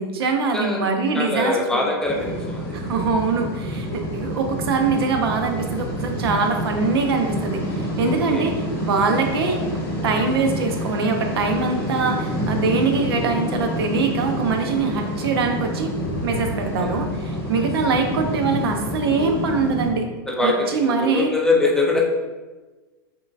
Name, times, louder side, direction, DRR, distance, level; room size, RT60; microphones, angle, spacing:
voice 1, 0.0-1.8 2.7-8.6 8.8-9.6 10.0-15.9 16.2-20.1 20.4-21.3, right 4 dB, 80° right, 4 dB, 0.7 m, -23 dB
voice 2, 1.1-2.8 3.7-3.8 8.0-8.4 11.8-11.9 16.8-16.9 20.3-22.0, left 2 dB, 5° left, -2 dB, 0.6 m, -23 dB
sound 1, 2.0-19.9, equal, 20° left, 1.2 m, -28 dB
5.4 x 3.8 x 2.5 m, 1.2 s
supercardioid pair, 140°, 13 cm